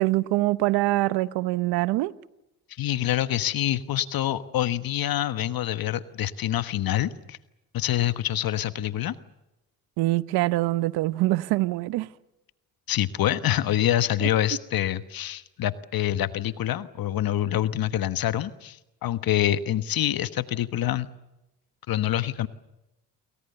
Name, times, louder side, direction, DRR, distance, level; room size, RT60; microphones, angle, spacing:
voice 1, 0.0-2.1 10.0-12.1 14.2-14.3, right 18 dB, 85° right, 0.9 m, -24 dB
voice 2, 2.8-7.4 7.7-9.1 12.9-21.1 21.9-22.5, left 12 dB, 65° left, 1.3 m, -26 dB
29.0 x 23.5 x 6.9 m
supercardioid pair, 60°, 37 cm